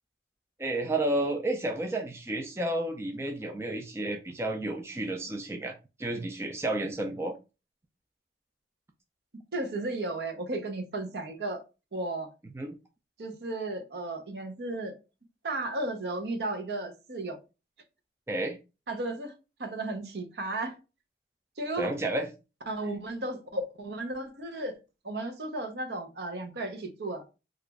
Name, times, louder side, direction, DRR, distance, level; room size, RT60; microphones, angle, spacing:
voice 1, 0.6-7.4 12.5-12.7 18.3-18.6 21.8-22.3, right 1 dB, 15° right, 0.3 m, -31 dB
voice 2, 9.5-11.6 11.9-12.3 13.2-14.9 15.4-17.4 18.9-19.3 19.6-20.8 21.6-21.9 22.7-24.8 25.0-27.2, right 2 dB, 70° right, 0.7 m, -34 dB
2.9 x 2.4 x 3.4 m
head